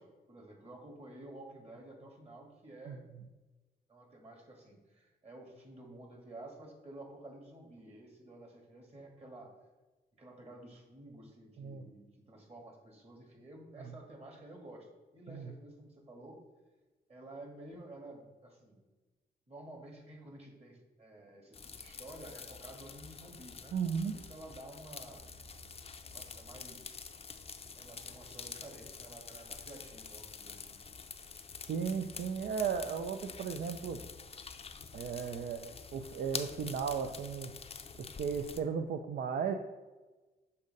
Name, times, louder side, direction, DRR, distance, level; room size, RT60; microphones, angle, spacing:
voice 1, 0.0-3.1 3.9-9.5 10.2-14.9 15.1-16.4 17.1-18.8 19.5-23.8 24.1-25.2 26.0-26.9 27.7-30.8, right 1 dB, 35° right, 1 dB, 1.7 m, -51 dB
sound 1, 21.5-38.6, left 5 dB, 35° left, 0.5 m, -47 dB
voice 2, 23.7-24.2 31.7-34.0 34.9-37.6 38.0-39.5, right 6 dB, 65° right, 5 dB, 0.4 m, -35 dB
6.6 x 2.7 x 5.2 m, 1.2 s
cardioid pair, 65°, 18 cm